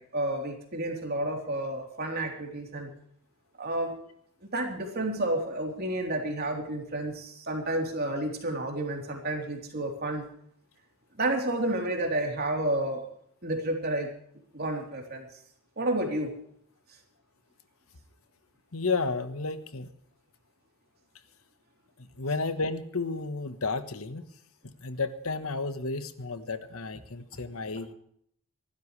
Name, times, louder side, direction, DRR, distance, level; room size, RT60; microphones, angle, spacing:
voice 1, 0.0-2.9 3.6-3.9 4.5-10.3 11.2-13.0 13.4-14.1 14.5-15.3 15.8-16.3, right 1 dB, 45° right, 2 dB, 3.6 m, -30 dB
voice 2, 18.7-19.9 22.2-24.2 24.8-27.9, left 3 dB, 75° left, 11 dB, 1.3 m, -32 dB
25.5 x 12.5 x 3.3 m, 0.65 s
head